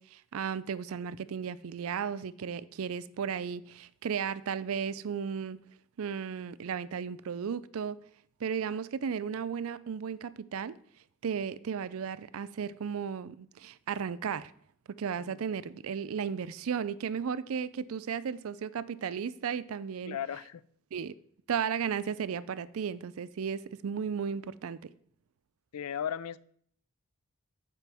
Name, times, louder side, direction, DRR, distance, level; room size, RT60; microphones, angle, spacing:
voice 1, 0.0-5.6 6.0-8.0 8.4-10.8 11.2-14.5 15.0-20.2 20.9-21.1 21.5-24.9, right 7 dB, 70° right, 0.4 m, -35 dB
voice 2, 20.1-20.6 25.7-26.4, left 8 dB, 85° left, 0.4 m, -36 dB
14.0 x 5.3 x 3.5 m
head